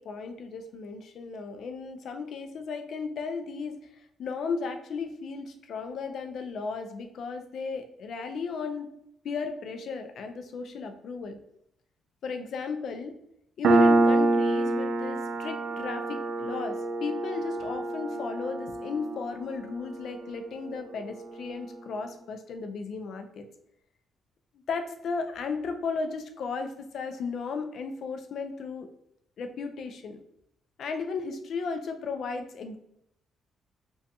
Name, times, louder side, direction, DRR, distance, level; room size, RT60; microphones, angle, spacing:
voice 1, 0.0-3.7 4.2-8.9 9.2-11.4 12.2-13.2 13.6-23.5 24.7-28.9 29.4-30.2 30.8-32.8, left 4 dB, 65° left, 6 dB, 0.4 m, -35 dB
Piano, 13.6-20.8, right 2 dB, 65° right, 0.4 m, -26 dB
2.4 x 2.2 x 2.6 m, 0.75 s
cardioid pair, 90°, 0 cm